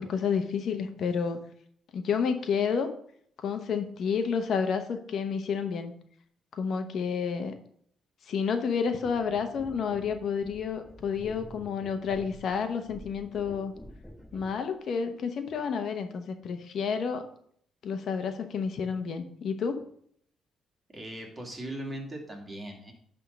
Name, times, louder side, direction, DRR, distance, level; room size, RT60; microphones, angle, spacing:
voice 1, 0.0-1.4 1.9-2.9 3.4-5.9 6.5-7.5 8.3-13.7 14.3-17.2 17.8-19.8, left 6 dB, 65° left, 7 dB, 0.9 m, -30 dB
sound 1, 9.0-14.6 15.5-15.6, equal, ahead, 1.2 m, -49 dB
voice 2, 20.9-22.9, right 1 dB, 25° right, 1 dB, 2.3 m, -39 dB
11.0 x 3.6 x 5.3 m, 0.63 s
cardioid pair, 90°, 0 cm